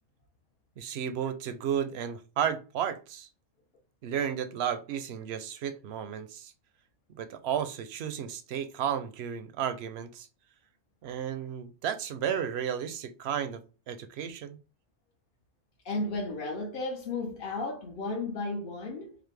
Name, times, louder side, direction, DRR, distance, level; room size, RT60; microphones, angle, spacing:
voice 1, 0.8-3.3 4.0-6.5 7.1-10.3 11.0-13.6 13.9-14.6, right 8 dB, 65° right, 0.7 m, -33 dB
voice 2, 15.8-19.2, left 2 dB, 55° left, 0.7 m, -34 dB
4.0 x 2.6 x 3.2 m
omnidirectional pair, 1.3 m